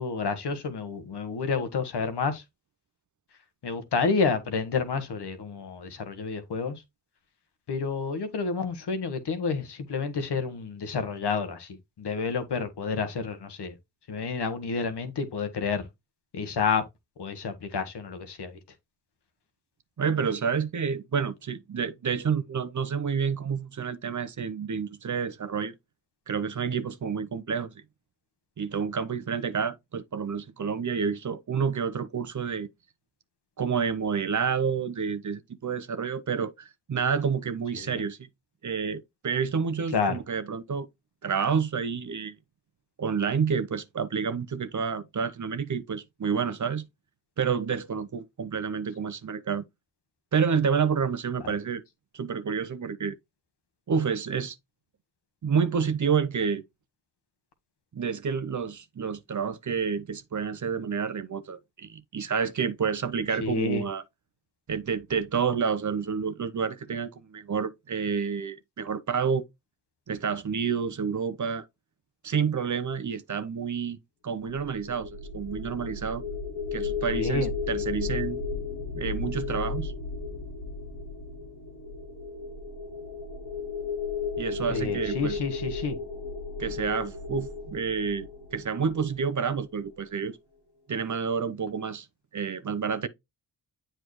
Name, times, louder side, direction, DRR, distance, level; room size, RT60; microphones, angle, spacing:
voice 1, 0.0-2.4 3.6-6.7 7.7-13.7 14.1-15.8 16.3-16.8 17.2-18.5 37.8-38.0 39.9-40.2 63.4-63.8 77.1-77.5 84.7-86.0, left 5 dB, 60° left, 1.4 m, -29 dB
voice 2, 20.0-25.7 26.3-27.7 28.6-32.7 33.6-38.3 38.6-40.9 41.2-42.4 43.0-46.9 47.4-49.6 50.3-51.8 52.1-53.1 53.9-54.6 55.4-56.6 57.9-64.0 64.7-69.4 70.1-71.6 72.2-74.0 74.2-76.2 76.7-78.4 78.9-79.9 84.4-85.4 86.6-90.4 90.9-92.1 92.3-93.1, right 6 dB, 40° right, 0.8 m, -29 dB
sound 1, 74.4-89.5, left 4 dB, 80° left, 1.4 m, -34 dB
7.9 x 4.4 x 3.1 m
supercardioid pair, 50°, 45 cm